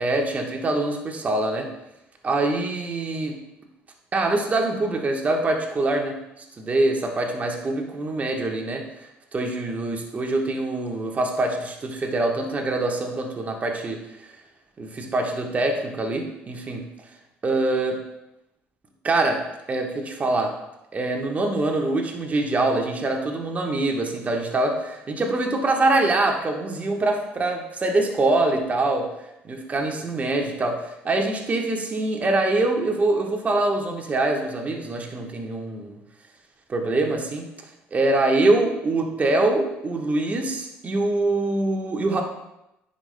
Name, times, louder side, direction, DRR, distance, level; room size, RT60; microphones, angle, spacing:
voice 1, 0.0-1.7 2.2-3.3 4.1-8.9 9.3-14.3 14.8-16.8 17.4-18.0 19.0-19.4 19.7-20.5 20.9-29.1 29.4-36.0 36.7-37.5 37.9-42.2, right 2 dB, 35° right, 2 dB, 1.2 m, -24 dB
9.6 x 5.4 x 2.2 m, 0.88 s
supercardioid pair, 75°, 5 cm